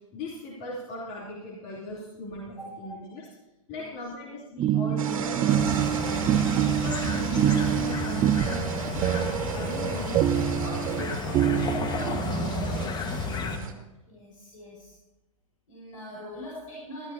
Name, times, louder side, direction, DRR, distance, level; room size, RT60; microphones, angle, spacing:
voice 1, 0.1-3.3 3.7-6.4 6.7-8.6 9.0-13.7, left 1 dB, 45° left, -4 dB, 3.0 m, -39 dB
sound 1, 4.6-12.8, right 11 dB, 25° right, 0.6 m, -26 dB
sound 2, 5.0-13.7, right 5 dB, 70° right, 2.0 m, -37 dB
sound 3, 5.5-13.6, left 4 dB, 25° left, 1.4 m, -33 dB
voice 2, 14.1-15.0 15.7-17.1, equal, 70° left, -5 dB, 5.2 m, -43 dB
19.0 x 13.5 x 2.7 m, 1.1 s
figure-of-eight pair, 100°, 18 cm